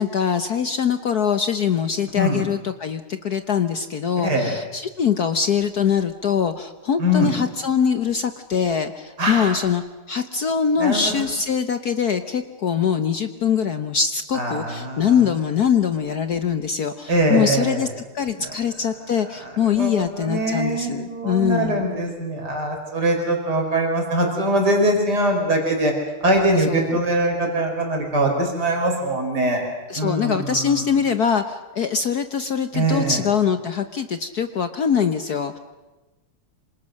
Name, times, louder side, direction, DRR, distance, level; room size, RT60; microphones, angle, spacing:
voice 1, 0.0-9.8 10.1-17.9 18.1-21.8 26.6-27.0 29.9-35.6, left 7 dB, 55° left, 9 dB, 1.3 m, -23 dB
voice 2, 2.1-2.4 4.2-4.5 7.0-7.3 9.2-9.6 10.8-11.1 14.3-15.2 17.1-17.9 18.4-18.5 19.4-25.9 26.2-29.7 29.9-30.8 32.7-33.2, right 1 dB, 45° right, 2 dB, 5.5 m, -22 dB
27.0 x 26.5 x 6.5 m, 1.1 s
omnidirectional pair, 2.4 m